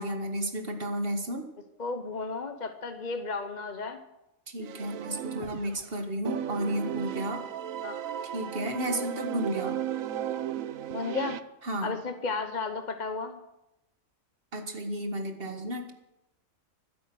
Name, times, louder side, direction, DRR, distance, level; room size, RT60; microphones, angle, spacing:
voice 1, 0.0-1.5 4.5-7.4 8.3-9.8 11.6-12.0 14.5-15.9, equal, 40° right, 5 dB, 1.9 m, -32 dB
voice 2, 1.8-4.0 7.8-8.0 10.9-11.4 11.8-13.4, left 4 dB, 35° left, 7 dB, 1.0 m, -33 dB
sound 1, 4.6-5.9 6.2-11.4, right 10 dB, 75° right, 1.1 m, -35 dB
25.0 x 8.5 x 6.2 m, 0.91 s
omnidirectional pair, 1.5 m